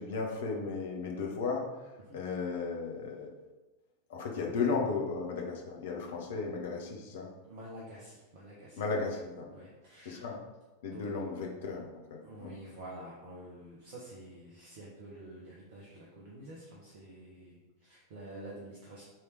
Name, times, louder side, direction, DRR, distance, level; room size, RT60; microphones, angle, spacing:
voice 1, 0.0-1.7 2.1-3.3 4.1-7.3 8.8-9.5 10.0-10.4 10.8-12.5, left 4 dB, 60° left, 0 dB, 1.3 m, -35 dB
voice 2, 7.4-9.1 9.4-10.2 10.9-11.3 12.2-19.0, right 1 dB, 50° right, -4 dB, 1.4 m, -48 dB
7.6 x 3.6 x 4.8 m, 1.1 s
figure-of-eight pair, 90°, 0 cm